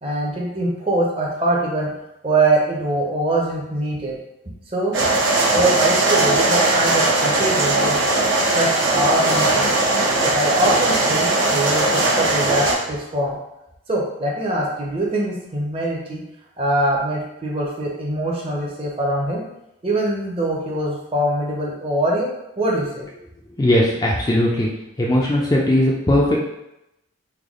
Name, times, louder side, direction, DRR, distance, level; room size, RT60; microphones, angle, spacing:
voice 1, 0.0-1.9 2.2-4.2 4.4-4.9 5.5-8.0 8.5-9.7 10.2-13.4 13.9-16.2 16.6-19.4 19.8-23.1, right 1 dB, 30° right, -3 dB, 0.6 m, -23 dB
sound 1, 4.9-12.7, right 2 dB, 70° right, 0.8 m, -19 dB
voice 2, 23.6-24.7 25.0-26.4, left 1 dB, 20° left, -3 dB, 0.3 m, -18 dB
3.3 x 2.2 x 3.6 m, 0.88 s
head